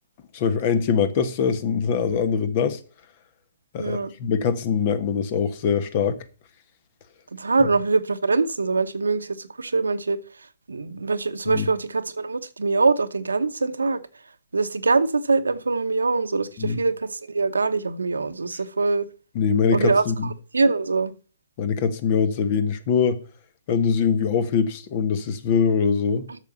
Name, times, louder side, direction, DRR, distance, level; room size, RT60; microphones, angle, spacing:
voice 1, 0.3-2.8 3.7-6.2 11.5-11.7 16.6-16.8 19.3-20.3 21.6-23.2 23.7-26.3, left 6 dB, 45° left, 1.3 m, -23 dB
voice 2, 3.8-4.1 7.3-10.2 10.7-14.0 14.5-19.1 19.7-21.1, right 3 dB, 90° right, 1.0 m, -23 dB
8.3 x 6.7 x 7.0 m
hypercardioid pair, 130°, 0 cm